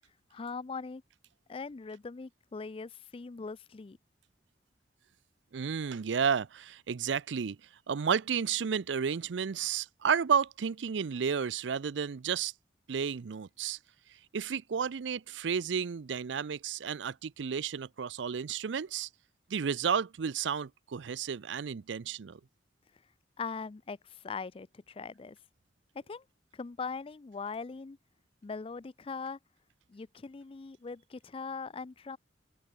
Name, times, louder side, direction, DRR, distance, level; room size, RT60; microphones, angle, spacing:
voice 1, 0.3-1.0 1.5-4.0 23.4-25.4 25.9-26.2 26.5-28.0 28.4-29.4 29.9-32.2, left 4 dB, 30° left, 0.4 m, -41 dB
voice 2, 5.5-7.6 7.9-12.5 12.9-13.8 14.3-19.1 19.5-22.4, right 7 dB, 90° right, 0.5 m, -32 dB
open air
head